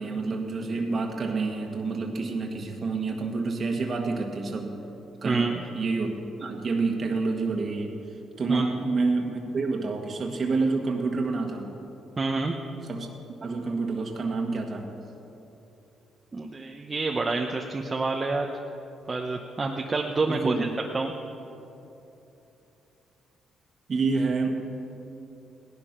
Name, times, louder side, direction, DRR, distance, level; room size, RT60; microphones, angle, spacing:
voice 1, 0.0-4.8 5.2-8.0 8.4-11.8 12.9-13.1 13.4-14.9 20.3-20.7 23.9-24.7, right 3 dB, 45° right, 2 dB, 1.6 m, -28 dB
voice 2, 5.2-5.6 8.5-8.7 12.2-12.5 16.3-18.5 19.1-20.7 20.9-21.1, right 3 dB, 30° right, 2 dB, 0.9 m, -28 dB
17.0 x 11.0 x 5.9 m, 2.9 s
cardioid pair, 90°, 0 cm